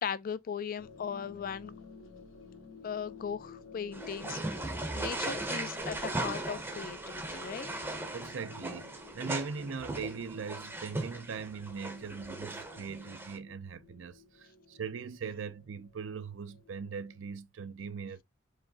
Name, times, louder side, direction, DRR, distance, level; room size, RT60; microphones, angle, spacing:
voice 1, 0.0-1.7 2.8-4.6 4.9-7.7, left 7 dB, 45° left, 0.3 m, -38 dB
sound 1, 0.8-17.2, left 4 dB, 85° left, 1.1 m, -53 dB
sound 2, 3.9-13.4, right 2 dB, 10° right, 0.7 m, -38 dB
voice 2, 8.1-18.2, right 5 dB, 75° right, 0.5 m, -40 dB
4.6 x 3.0 x 2.7 m
head